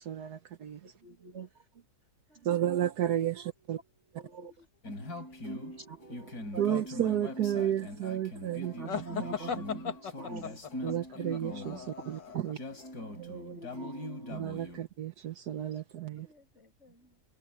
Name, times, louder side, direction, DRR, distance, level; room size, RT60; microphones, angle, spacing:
voice 1, 0.0-0.8 2.4-3.8 6.6-8.7 10.8-12.6 14.3-16.3, right 11 dB, 65° right, 1.4 m, -32 dB
voice 2, 0.8-1.5 2.3-2.5 4.1-4.7 5.8-6.8 8.8-10.7 11.7-11.8 13.1-14.5 16.1-16.2, right 5 dB, 40° right, 2.0 m, -45 dB
voice 3, 2.3-4.2 4.7-4.8 5.7-5.8 12.7-13.4 13.9-14.0 14.7-14.8 15.7-15.8 16.1-17.2, right 2 dB, 40° left, 7.0 m, -65 dB
sound 1, 4.8-14.8, left 1 dB, 60° left, 5.7 m, -42 dB
sound 2, 8.9-12.5, left 7 dB, 80° left, 2.5 m, -37 dB
omnidirectional pair, 1.9 m